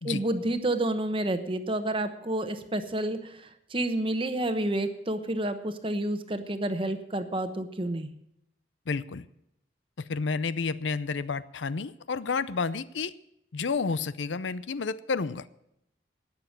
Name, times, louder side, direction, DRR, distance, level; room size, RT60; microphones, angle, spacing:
voice 1, 0.0-8.1, right 1 dB, 30° right, 9 dB, 1.1 m, -29 dB
voice 2, 8.9-9.3 10.1-13.1 13.5-15.5, left 4 dB, 80° left, 16 dB, 0.6 m, -30 dB
18.5 x 7.0 x 7.3 m, 0.80 s
head